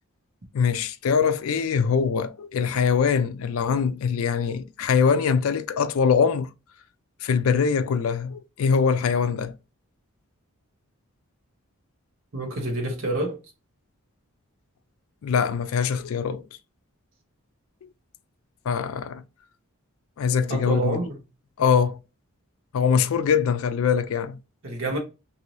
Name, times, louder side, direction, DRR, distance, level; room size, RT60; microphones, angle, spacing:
voice 1, 0.5-6.5 7.2-9.5 15.2-16.5 18.7-19.2 20.2-21.0 21.6-22.0 22.7-24.4, left 6 dB, 65° left, 0.3 m, -23 dB
voice 2, 12.3-13.4 20.5-21.1 24.6-25.0, right 2 dB, 60° right, 1.0 m, -27 dB
2.7 x 2.6 x 3.0 m
head